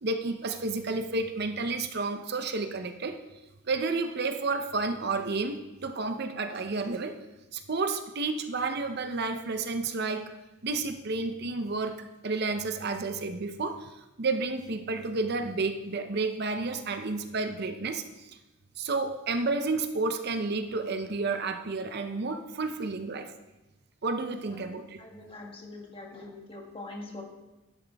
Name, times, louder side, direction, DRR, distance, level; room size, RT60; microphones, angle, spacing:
voice 1, 0.0-3.2 3.6-7.2 7.5-10.3 10.6-18.3 18.8-23.3 24.0-25.0, right 3 dB, 50° right, 8 dB, 0.6 m, -31 dB
voice 2, 24.2-24.6 25.0-27.2, left 2 dB, 25° left, 0 dB, 1.7 m, -43 dB
11.5 x 11.0 x 3.5 m, 1.1 s
head